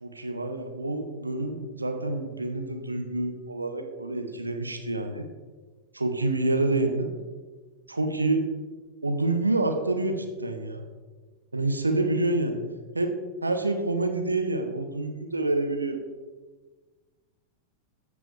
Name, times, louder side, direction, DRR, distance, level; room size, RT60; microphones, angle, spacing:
voice 1, 0.0-5.3 5.9-7.1 7.9-8.4 9.0-10.8 11.5-12.6 12.9-13.1 13.4-16.0, right 2 dB, 80° right, 6 dB, 0.9 m, -27 dB
15.0 x 5.2 x 3.3 m, 1.3 s
figure-of-eight pair, 90°, 0 cm